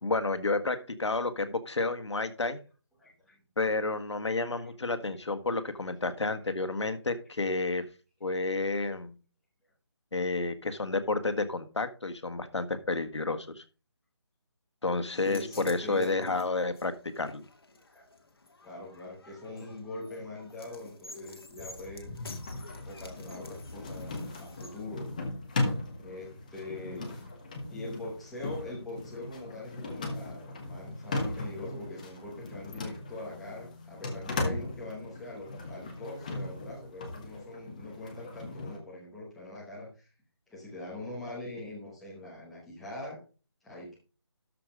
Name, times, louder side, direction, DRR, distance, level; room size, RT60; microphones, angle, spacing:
voice 1, 0.0-2.6 3.6-7.8 8.2-9.1 10.1-13.6 14.8-17.4, left 3 dB, 80° left, 9 dB, 1.6 m, -30 dB
voice 2, 3.0-3.4 4.6-4.7 15.1-16.4 17.9-18.0 18.6-22.1 22.8-25.1 26.0-27.2 27.7-40.1 40.5-43.2 43.6-44.0, left 2 dB, ahead, -7 dB, 0.9 m, -42 dB
sound 1, 15.1-24.9, left 2 dB, 55° left, 2.3 m, -48 dB
sound 2, 22.1-38.8, left 2 dB, 15° left, 1.2 m, -38 dB
13.0 x 4.9 x 5.2 m, 0.34 s
figure-of-eight pair, 175°, 15 cm